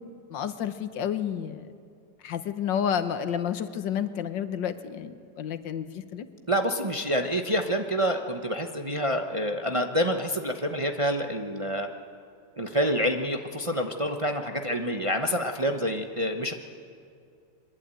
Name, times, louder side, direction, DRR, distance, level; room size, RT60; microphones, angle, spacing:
voice 1, 0.3-1.7 2.2-6.3, left 8 dB, 85° left, 10 dB, 1.8 m, -30 dB
voice 2, 6.5-11.9 12.6-16.5, equal, 25° right, 4 dB, 0.8 m, -27 dB
23.0 x 21.0 x 9.1 m, 2.4 s
omnidirectional pair, 1.9 m